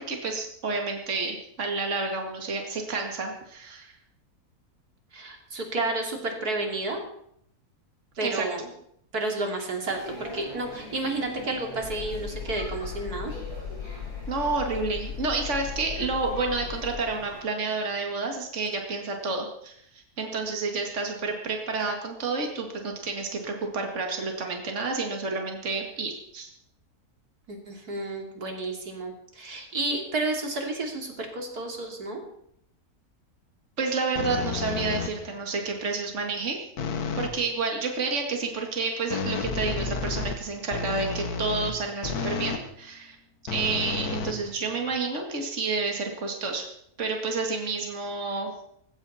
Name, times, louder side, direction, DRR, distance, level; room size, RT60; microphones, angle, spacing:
voice 1, 0.0-3.9 8.2-8.5 14.3-26.5 33.8-36.6 37.2-43.2 43.5-46.7 47.0-48.5, right 4 dB, 50° right, 2 dB, 2.4 m, -30 dB
voice 2, 5.1-7.0 8.2-8.7 9.1-13.3 27.5-32.2, right 2 dB, 80° right, 2 dB, 3.4 m, -31 dB
sound 1, 9.8-17.4, equal, 20° left, 7.6 m, -43 dB
sound 2, 11.8-17.1, left 7 dB, 50° left, 1.1 m, -37 dB
sound 3, 34.1-35.4 36.8-37.4 39.1-42.7 43.5-44.9, left 5 dB, 80° left, 1.8 m, -31 dB
19.0 x 16.5 x 4.3 m, 0.70 s
omnidirectional pair, 1.6 m